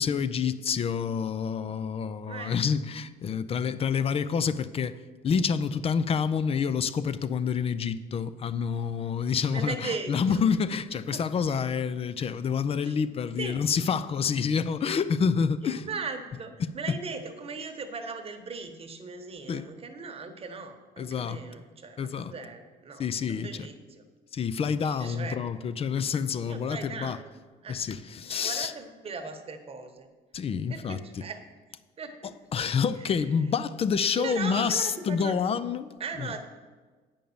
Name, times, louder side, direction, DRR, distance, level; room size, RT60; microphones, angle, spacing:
voice 1, 0.0-5.0 5.2-15.9 16.6-16.7 19.5-19.7 21.0-21.4 22.0-22.3 23.0-23.7 24.3-27.2 27.7-28.7 30.3-31.0 32.5-36.3, left 6 dB, 35° left, 0.5 m, -28 dB
voice 2, 9.5-10.4 11.1-11.3 12.8-12.9 13.4-13.6 15.6-24.0 24.8-25.4 26.5-27.3 27.6-27.8 28.4-30.1 30.7-31.4 32.0-32.4 33.0-33.2 34.2-35.4 36.0-36.4, right 4 dB, 35° right, 1.1 m, -38 dB
9.1 x 5.3 x 7.0 m
cardioid pair, 110°, 17 cm